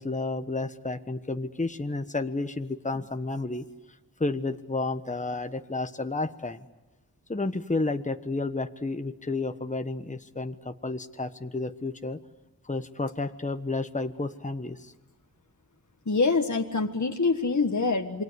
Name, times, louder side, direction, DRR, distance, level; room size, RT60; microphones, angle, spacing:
voice 1, 0.0-3.6 4.2-6.6 7.3-12.2 12.6-14.9, left 3 dB, 20° left, 8 dB, 1.2 m, -31 dB
voice 2, 16.0-18.2, left 4 dB, 50° left, 4 dB, 1.7 m, -25 dB
28.0 x 23.0 x 8.2 m, 1.1 s
wide cardioid pair, 45°, 37 cm